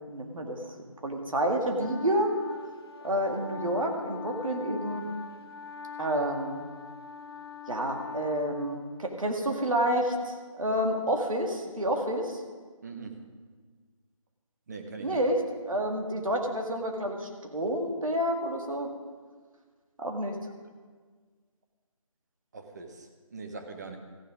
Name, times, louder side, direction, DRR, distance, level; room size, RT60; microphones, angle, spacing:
voice 1, 0.1-0.7 1.0-2.3 3.0-5.1 6.0-6.6 7.7-12.4 15.0-15.4 15.7-18.9 20.0-20.4, right 1 dB, 75° right, 2 dB, 2.2 m, -29 dB
Wind instrument woodwind instrument, 1.8-9.3, left 5 dB, 45° left, 0.8 m, -42 dB
voice 2, 12.8-13.2 14.7-15.2 22.5-24.0, right 4 dB, 30° right, 4 dB, 1.2 m, -42 dB
14.5 x 9.7 x 5.1 m, 1.5 s
figure-of-eight pair, 165°, 18 cm